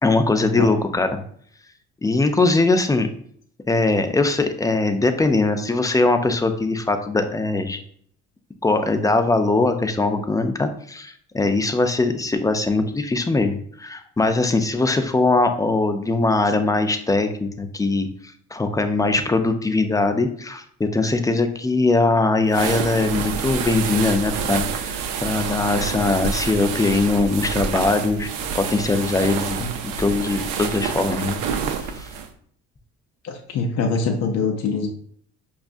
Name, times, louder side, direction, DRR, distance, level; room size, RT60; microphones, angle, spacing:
voice 1, 0.0-1.2 2.0-3.1 3.7-7.8 8.6-18.1 18.5-28.3 28.5-31.4 31.8-32.1, left 3 dB, 10° left, 7 dB, 0.4 m, -21 dB
sound 1, 22.5-32.3, right 6 dB, 70° right, 0.6 m, -28 dB
voice 2, 33.2-34.9, left 4 dB, 50° left, 2 dB, 0.6 m, -24 dB
5.1 x 2.4 x 2.4 m, 0.62 s
supercardioid pair, 75°, 33 cm